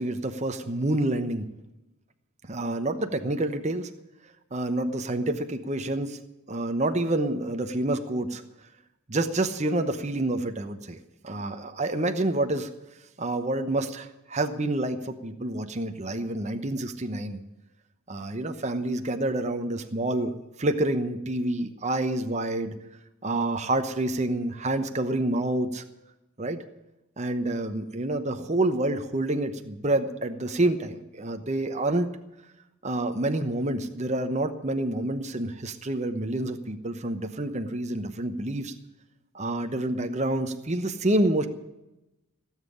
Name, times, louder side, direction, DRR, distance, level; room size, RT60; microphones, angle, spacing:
voice 1, 0.0-1.5 2.4-3.9 4.5-6.2 6.5-8.4 9.1-11.0 11.2-12.7 13.2-17.4 18.1-22.8 23.2-25.8 26.4-26.6 27.2-32.1 32.8-38.7 39.3-41.5, right 1 dB, 30° right, 7 dB, 0.9 m, -28 dB
17.0 x 7.4 x 9.9 m, 0.98 s
head